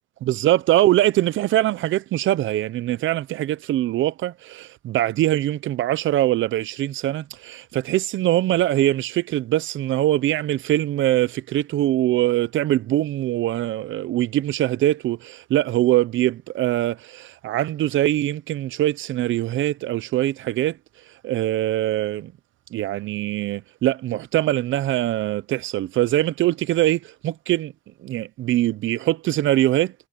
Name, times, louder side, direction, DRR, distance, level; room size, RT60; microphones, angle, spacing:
voice 1, 0.2-20.8 21.2-22.3 22.7-27.7 28.0-29.9, right 14 dB, 75° right, 0.7 m, -22 dB
cardioid pair, 90°, 20 cm